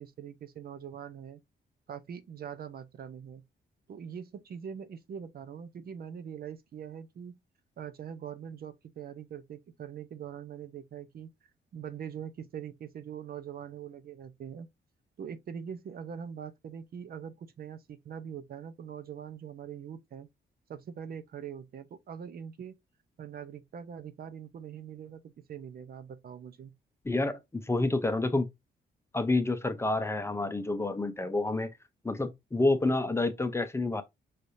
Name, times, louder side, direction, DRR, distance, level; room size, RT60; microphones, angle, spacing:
voice 1, 0.0-1.4 1.9-3.4 3.9-7.4 7.8-11.3 11.7-14.7 15.2-20.3 20.7-22.7 23.2-26.7, right 8 dB, 55° right, 0.7 m, -43 dB
voice 2, 27.0-28.5 29.1-31.7 32.0-34.0, left 2 dB, 15° left, 0.6 m, -28 dB
5.7 x 3.3 x 2.6 m
wide cardioid pair, 155°, 19 cm